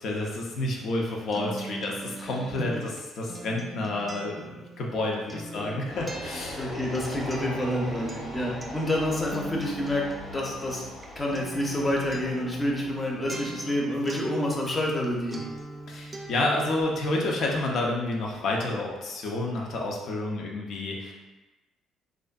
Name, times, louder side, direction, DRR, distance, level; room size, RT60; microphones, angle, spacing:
voice 1, 0.0-6.7 15.9-21.1, left 2 dB, 65° left, -1 dB, 0.5 m, -30 dB
Acoustic guitar, 0.8-15.1 15.3-16.8, right 2 dB, 30° right, 0.4 m, -42 dB
sound 1, 5.9-18.9, left 1 dB, 85° left, 1.1 m, -42 dB
voice 2, 6.6-10.0 10.3-10.8 11.2-15.4, left 1 dB, 25° left, -2 dB, 0.6 m, -28 dB
2.5 x 2.4 x 2.3 m, 1.1 s
hypercardioid pair, 55°, 0 cm